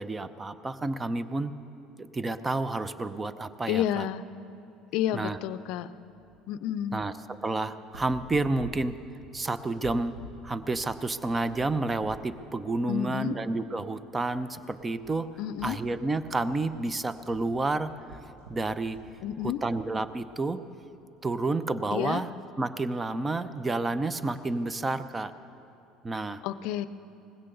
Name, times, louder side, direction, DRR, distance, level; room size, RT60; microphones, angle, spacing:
voice 1, 0.0-1.5 2.0-4.1 5.1-5.4 6.9-7.1 7.4-9.0 9.3-10.2 10.4-15.3 15.6-18.2 18.5-19.0 19.4-20.6 21.2-25.3 26.0-26.4, right 2 dB, 20° right, 14 dB, 0.7 m, -30 dB
voice 2, 3.7-4.2 4.9-5.9 6.5-7.0 12.9-13.4 15.4-15.8 19.2-19.6 21.9-22.2 26.4-26.9, left 11 dB, 70° left, 15 dB, 0.5 m, -30 dB
sound 1, 6.0-6.4 6.8-6.9 7.8-12.3 12.7-12.9 13.7-13.8 14.0-20.4 21.1-21.5 23.7-24.8, right 1 dB, 80° right, 1.7 m, -51 dB
19.5 x 16.0 x 3.9 m, 2.8 s
hypercardioid pair, 75°, 0 cm